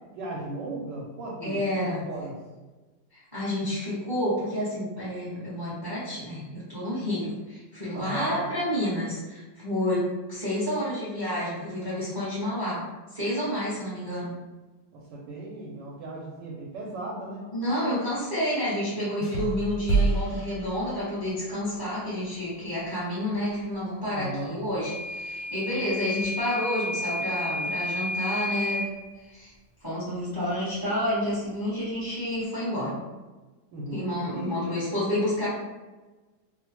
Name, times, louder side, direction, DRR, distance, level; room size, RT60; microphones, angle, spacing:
voice 1, 0.1-2.3 7.9-8.4 14.9-17.5 24.1-24.6 33.7-34.0 34.3-34.5, right 1 dB, 75° right, -3 dB, 1.2 m, -36 dB
voice 2, 1.4-2.0 3.1-12.8 13.1-14.3 17.5-28.9 29.3-29.5 29.8-33.0 33.9-35.5, left 1 dB, 20° right, -10 dB, 0.7 m, -29 dB
sound 1, 19.2-21.4, right 3 dB, 90° left, 1.3 m, -28 dB
Microwave oven / Alarm, 24.8-28.9, left 1 dB, 75° left, 0.6 m, -31 dB
3.0 x 2.1 x 2.9 m, 1.2 s
omnidirectional pair, 2.0 m